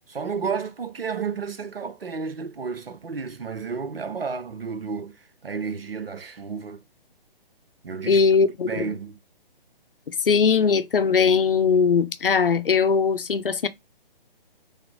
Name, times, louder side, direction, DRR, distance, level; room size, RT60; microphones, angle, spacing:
voice 1, 0.1-6.8 7.8-8.2 8.6-9.2, right 5 dB, 75° right, 0.7 m, -32 dB
voice 2, 8.1-8.9 10.2-13.7, left 5 dB, 65° left, 0.6 m, -20 dB
3.5 x 2.8 x 4.0 m
figure-of-eight pair, 135°, 29 cm